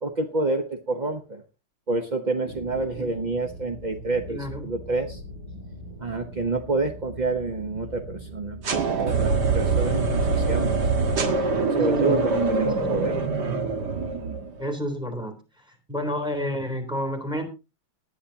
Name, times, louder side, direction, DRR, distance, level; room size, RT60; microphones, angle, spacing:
voice 1, 0.0-1.4 1.9-5.2 6.0-10.8 11.8-13.2, right 3 dB, 35° right, 6 dB, 0.7 m, -28 dB
sound 1, 2.5-14.2, equal, 85° right, 4.9 m, -41 dB
voice 2, 4.3-4.6 11.7-13.0 14.6-15.3 15.9-17.4, equal, ahead, 5 dB, 3.5 m, -30 dB
sound 2, 8.6-14.6, right 4 dB, 55° right, 2.1 m, -24 dB
18.5 x 10.5 x 2.9 m, 0.30 s
omnidirectional pair, 2.3 m